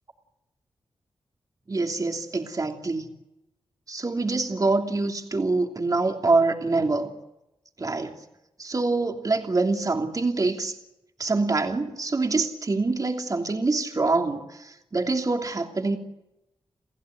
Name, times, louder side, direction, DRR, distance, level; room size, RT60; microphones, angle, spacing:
voice 1, 1.7-3.1 3.9-7.1 7.8-8.1 8.6-10.7 11.2-16.0, right 3 dB, 40° right, 3 dB, 2.9 m, -25 dB
29.5 x 15.5 x 9.3 m, 0.92 s
cardioid pair, 70°, 9 cm